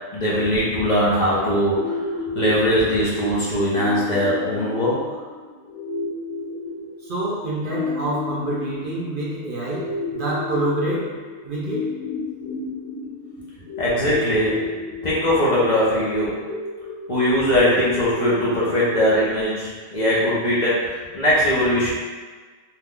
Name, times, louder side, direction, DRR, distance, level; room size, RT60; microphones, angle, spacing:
voice 1, 0.1-2.0 2.3-5.2 13.8-14.6 15.0-16.4 17.1-21.9, equal, 45° left, -8 dB, 0.6 m, -20 dB
sound 1, 1.7-17.7, left 3 dB, 70° left, 1.4 m, -32 dB
voice 2, 7.0-11.9, right 1 dB, 50° right, -5 dB, 0.7 m, -27 dB
2.8 x 2.3 x 3.6 m, 1.4 s
omnidirectional pair, 1.4 m